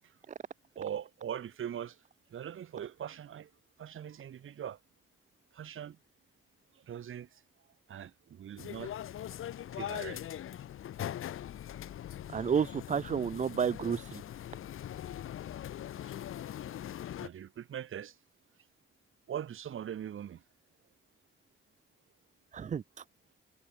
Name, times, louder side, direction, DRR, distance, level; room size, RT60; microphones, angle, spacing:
voice 1, 0.8-2.0 2.3-3.5 3.8-4.8 5.5-6.0 6.9-7.4 7.9-8.9 9.7-10.3 17.2-18.1 19.3-20.4, right 9 dB, 75° right, 5.9 m, -41 dB
sound 1, 8.6-17.3, left 11 dB, 80° left, 1.2 m, -41 dB
voice 2, 12.3-14.2 22.5-22.8, right 7 dB, 35° right, 0.6 m, -31 dB
wide cardioid pair, 175°, 21 cm